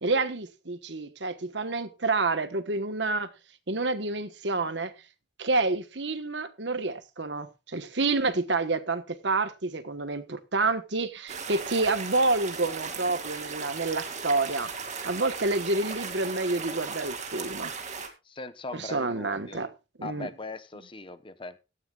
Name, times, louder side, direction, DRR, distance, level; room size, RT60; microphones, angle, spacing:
voice 1, 0.0-3.3 3.7-4.9 5.4-14.7 15.0-17.7 18.7-19.7 20.0-20.3, right 3 dB, 65° right, 1.3 m, -28 dB
sound 1, 11.3-18.1, right 5 dB, 40° right, 2.4 m, -37 dB
voice 2, 18.3-19.6 20.0-21.6, left 2 dB, 25° left, 0.9 m, -40 dB
17.0 x 13.0 x 2.4 m
head